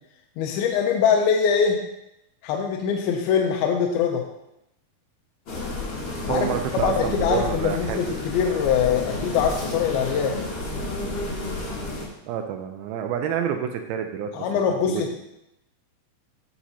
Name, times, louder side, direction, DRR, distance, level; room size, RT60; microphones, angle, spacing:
voice 1, 0.4-1.8 2.4-4.2 6.3-6.5 6.8-10.4 14.3-15.2, left 7 dB, 85° left, 2 dB, 2.5 m, -23 dB
sound 1, 5.5-12.1, left 2 dB, 55° left, 1.4 m, -31 dB
voice 2, 6.3-8.0 12.3-14.5 14.9-15.2, right 8 dB, 85° right, 5 dB, 2.4 m, -28 dB
9.7 x 5.9 x 2.8 m, 0.85 s
omnidirectional pair, 4.3 m